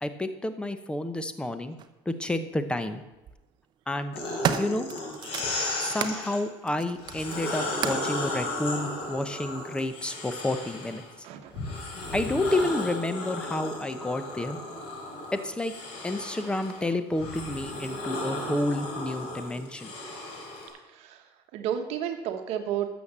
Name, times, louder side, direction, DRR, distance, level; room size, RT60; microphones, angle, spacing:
voice 1, 0.0-1.8 2.1-3.0 3.9-4.1 4.6-4.9 5.8-11.0 12.1-14.6 15.4-15.7 16.0-19.9, left 1 dB, 10° left, 10 dB, 0.9 m, -30 dB
sound 1, 1.8-1.9 3.0-3.4 3.9-6.2 6.6-8.1 9.0-9.1, right 8 dB, 40° right, 0.8 m, -33 dB
sound 2, 4.1-6.4 7.0-11.1 11.5-20.7, left 2 dB, 65° left, 4.9 m, -35 dB
voice 2, 11.2-11.8 20.9-21.2 21.5-22.9, right 9 dB, 70° right, 5 dB, 1.1 m, -32 dB
13.0 x 7.1 x 7.3 m, 1.0 s
cardioid pair, 130°, 11 cm